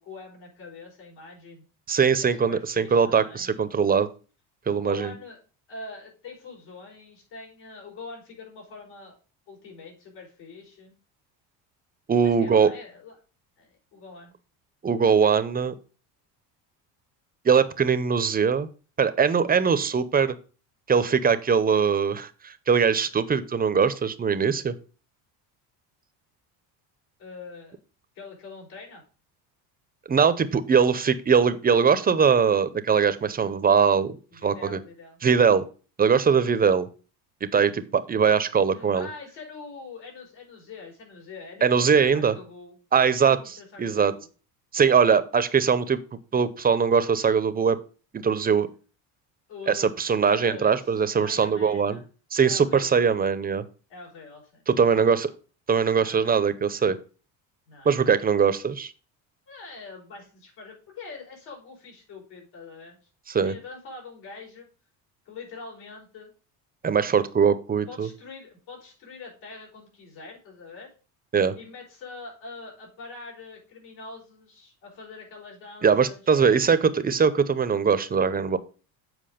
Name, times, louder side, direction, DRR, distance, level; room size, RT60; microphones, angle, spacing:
voice 1, 0.0-1.6 2.2-3.7 4.7-5.4 5.7-9.2 9.5-10.9 12.2-13.2 13.6-14.3 27.2-27.8 28.1-29.0 34.3-35.2 37.7-37.9 38.7-42.7 43.1-44.3 49.5-52.1 52.4-53.2 53.9-54.6 54.9-55.2 56.0-56.3 57.7-58.4 59.5-63.0 63.4-64.7 65.2-66.3 67.9-70.9 71.6-76.2, left 4 dB, 80° left, -2 dB, 4.9 m, -44 dB
voice 2, 1.9-4.1 4.7-5.1 12.1-12.7 14.8-15.7 17.4-18.7 19.0-20.3 20.9-24.7 30.1-34.1 34.4-34.8 35.2-35.6 36.0-36.9 37.4-39.1 41.6-42.3 42.9-44.1 44.7-46.0 46.3-47.8 48.1-48.7 49.7-52.0 52.3-53.6 54.7-55.3 55.7-57.0 57.8-58.9 63.3-63.5 66.8-68.1 71.3-71.5 75.8-78.6, right 6 dB, 20° right, 13 dB, 0.6 m, -21 dB
7.7 x 4.7 x 5.0 m, 0.36 s
cardioid pair, 115°, 44 cm